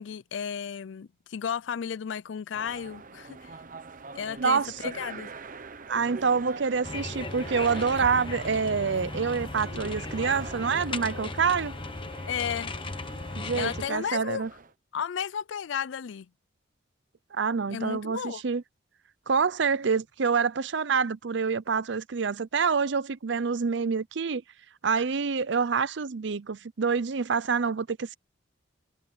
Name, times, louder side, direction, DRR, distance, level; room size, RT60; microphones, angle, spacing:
voice 1, 0.0-3.5 4.1-5.3 12.3-12.7 13.6-14.4 14.9-16.3 17.7-18.4, left 7 dB, 70° left, 0.4 m, -33 dB
sound 1, 2.5-14.7, right 4 dB, 45° right, 1.0 m, -43 dB
voice 2, 4.4-4.7 5.9-11.7 13.4-14.5 17.3-18.6 19.3-24.4 24.8-28.1, right 5 dB, 65° right, 0.6 m, -27 dB
sound 2, 6.8-13.9, left 3 dB, 25° left, 1.1 m, -36 dB
head